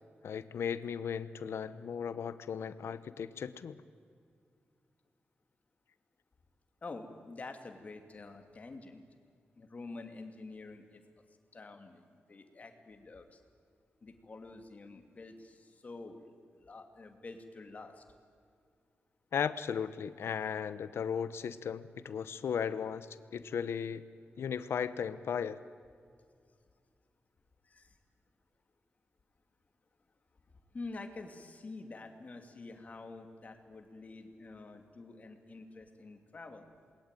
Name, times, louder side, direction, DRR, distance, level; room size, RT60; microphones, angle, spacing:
voice 1, 0.2-3.8 19.3-24.0 24.4-25.6, left 7 dB, 90° left, 14 dB, 0.9 m, -36 dB
voice 2, 6.8-9.0 9.6-11.0 11.5-13.4 14.0-18.0 27.6-27.9 30.7-36.7, left 3 dB, 35° left, 5 dB, 2.7 m, -48 dB
27.5 x 21.0 x 9.1 m, 2.2 s
wide cardioid pair, 140°, 4 cm